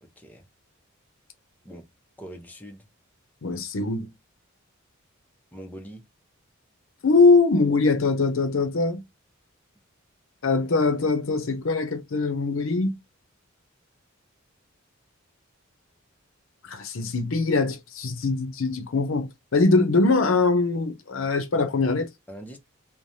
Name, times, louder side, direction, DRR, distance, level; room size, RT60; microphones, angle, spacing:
voice 1, 0.0-0.4 1.6-1.9 2.2-2.9 5.5-6.0 22.3-22.6, right 1 dB, 10° left, 0.6 m, -42 dB
voice 2, 3.4-4.1 7.0-9.0 10.4-12.9 16.6-22.1, left 3 dB, 70° left, 0.6 m, -22 dB
3.2 x 2.1 x 2.6 m
head